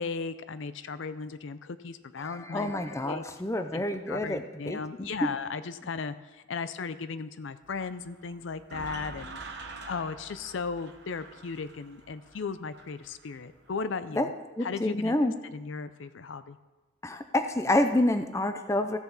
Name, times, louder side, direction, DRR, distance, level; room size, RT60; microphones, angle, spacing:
voice 1, 0.0-2.7 3.0-3.2 3.7-9.4 9.9-14.3 14.6-15.2 15.5-16.6, left 5 dB, 70° left, 12 dB, 0.5 m, -36 dB
voice 2, 2.2-5.1 14.2-14.3 14.6-15.3 17.0-19.0, left 1 dB, 15° left, 8 dB, 0.5 m, -28 dB
sound 1, 7.6-13.9, right 3 dB, 55° right, 1.1 m, -46 dB
15.0 x 7.0 x 4.0 m, 1.2 s
head